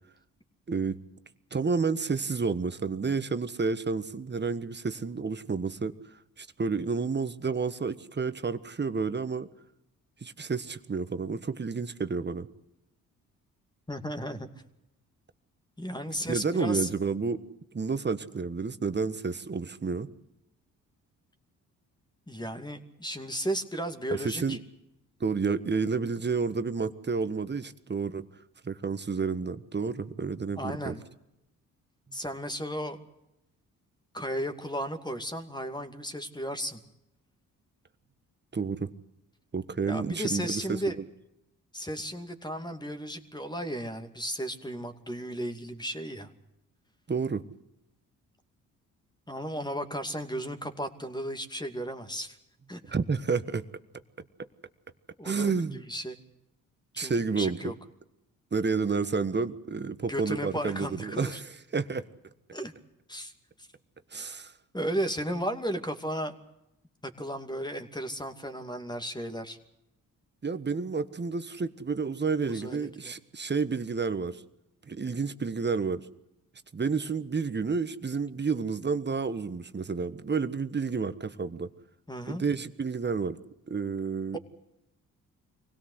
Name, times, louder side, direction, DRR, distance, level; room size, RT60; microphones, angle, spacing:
voice 1, 0.7-1.0 1.5-5.9 6.4-9.5 10.2-12.5 16.3-17.4 17.7-20.1 24.1-24.6 25.2-28.2 28.6-31.0 38.5-38.9 39.5-41.0 47.1-47.4 52.9-53.6 55.2-55.8 57.0-57.7 58.5-61.4 61.7-62.1 64.1-64.5 70.4-74.4 74.9-76.1 76.7-81.7 82.3-83.4 83.7-84.4, right 5 dB, 30° right, 12 dB, 1.4 m, -30 dB
voice 2, 13.9-14.5 15.8-16.9 22.3-24.6 30.6-31.0 32.1-33.0 34.1-36.8 39.8-41.0 41.7-46.3 49.3-52.4 52.7-52.8 55.2-56.2 56.9-57.7 60.1-61.4 62.5-62.7 63.1-63.3 64.7-66.3 67.0-69.6 72.5-73.1 82.1-82.4, equal, 10° left, 7 dB, 2.6 m, -34 dB
24.0 x 17.5 x 8.0 m, 0.85 s
supercardioid pair, 60°, 35 cm